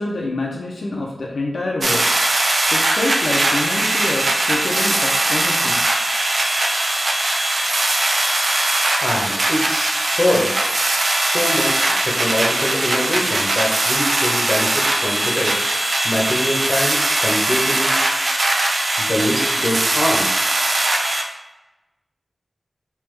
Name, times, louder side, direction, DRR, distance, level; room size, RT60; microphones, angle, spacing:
voice 1, 0.0-2.1 2.7-5.8, left 2 dB, 80° left, -3 dB, 0.5 m, -26 dB
sound 1, 1.8-21.2, right 2 dB, 55° right, 0.4 m, -20 dB
voice 2, 9.0-10.6 11.2-15.6 16.0-17.9 19.0-20.3, left 1 dB, 35° left, -2 dB, 0.9 m, -24 dB
3.4 x 2.9 x 3.2 m, 1.0 s
wide cardioid pair, 100°, 0 cm